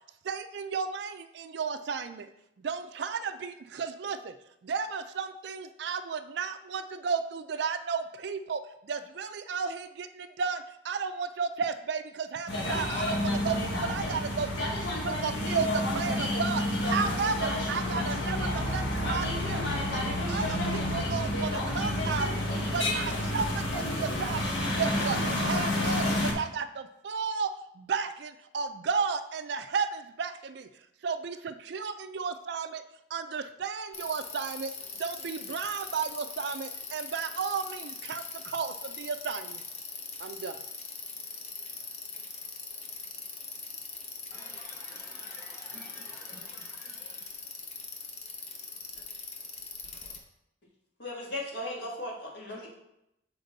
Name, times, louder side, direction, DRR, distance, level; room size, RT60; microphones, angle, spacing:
voice 1, 0.2-2.3 2.6-4.4 4.6-14.7 15.0-32.8 33.1-39.6 40.2-40.6, right 5 dB, 60° right, 10 dB, 0.4 m, -34 dB
sound 1, 12.5-26.3, left 1 dB, 80° left, 1.3 m, -29 dB
Bicycle, 33.9-50.2, left 4 dB, 35° left, 0.8 m, -42 dB
voice 2, 44.3-47.1, left 1 dB, 15° left, -3 dB, 1.2 m, -51 dB
voice 3, 51.0-52.7, left 1 dB, 60° left, -3 dB, 1.7 m, -37 dB
6.6 x 4.4 x 4.0 m, 0.82 s
head